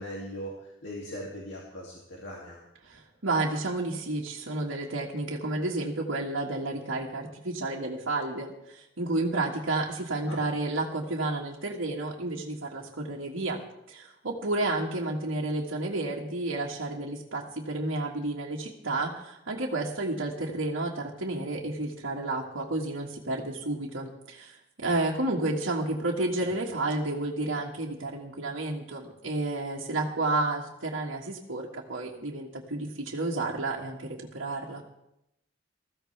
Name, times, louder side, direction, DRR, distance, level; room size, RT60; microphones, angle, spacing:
voice 1, 0.0-2.6 10.3-10.4 26.4-26.5, equal, 65° left, -3 dB, 2.5 m, -40 dB
voice 2, 2.8-13.6 13.9-34.8, right 2 dB, 90° right, -4 dB, 1.7 m, -31 dB
20.5 x 15.0 x 3.4 m, 0.83 s
head